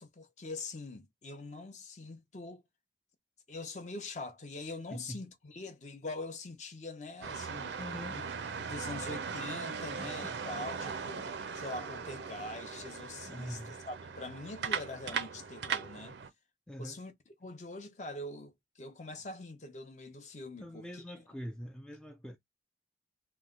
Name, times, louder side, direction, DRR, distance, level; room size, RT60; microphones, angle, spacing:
voice 1, 0.0-2.6 3.5-7.8 8.1-8.2 8.6-13.6 13.9-16.2 16.8-17.1 17.4-21.0, left 2 dB, 40° left, 0.7 m, -43 dB
voice 2, 4.9-5.2 7.8-8.2 10.0-10.4 13.2-13.8 16.7-17.0 20.6-22.4, equal, 5° left, 0.3 m, -43 dB
sound 1, 7.2-16.3, right 6 dB, 80° right, 0.5 m, -39 dB
3.0 x 2.2 x 3.6 m
head